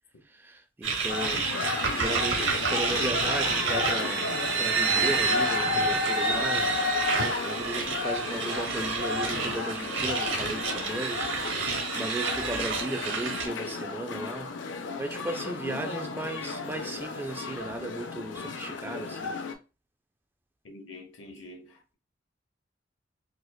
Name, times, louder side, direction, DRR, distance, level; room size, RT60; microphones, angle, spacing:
voice 1, 0.3-19.4, right 1 dB, 10° right, 0.3 m, -36 dB
sound 1, 0.8-13.5, right 5 dB, 75° right, 0.7 m, -29 dB
sound 2, 1.1-19.5, left 4 dB, 70° left, 0.5 m, -33 dB
voice 2, 20.6-21.9, left 2 dB, 85° left, 0.9 m, -46 dB
4.7 x 2.1 x 2.2 m
head